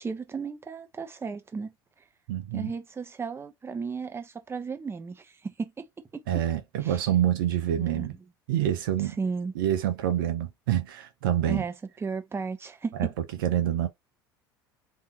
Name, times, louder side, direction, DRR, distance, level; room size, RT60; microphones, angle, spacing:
voice 1, 0.0-1.7 2.5-5.9 6.1-6.4 6.8-7.0 7.8-8.1 9.2-9.5 11.5-11.7 12.0-13.1, right 5 dB, 20° right, 1.0 m, -34 dB
voice 2, 2.3-2.7 6.3-8.2 8.5-9.2 9.6-11.6 12.9-13.1 13.4-13.9, right 11 dB, 70° right, 0.7 m, -26 dB
3.7 x 2.8 x 4.1 m
figure-of-eight pair, 70°, 12 cm